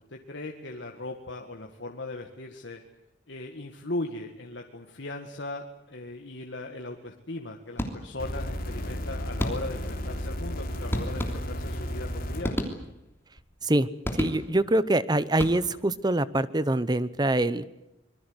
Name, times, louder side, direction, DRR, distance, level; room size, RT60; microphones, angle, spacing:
voice 1, 0.1-2.8 3.3-12.6, left 2 dB, 70° left, 3 dB, 1.9 m, -38 dB
sound 1, 7.8-8.3 9.4-9.9 10.9-11.8 12.4-13.2 14.0-14.7 15.3-15.9, equal, 15° left, 3.1 m, -33 dB
sound 2, 8.2-12.4 13.4-13.5, equal, 50° left, 4.0 m, -33 dB
voice 2, 13.6-17.6, right 1 dB, 20° right, 16 dB, 0.9 m, -25 dB
25.5 x 22.0 x 8.0 m, 0.87 s
head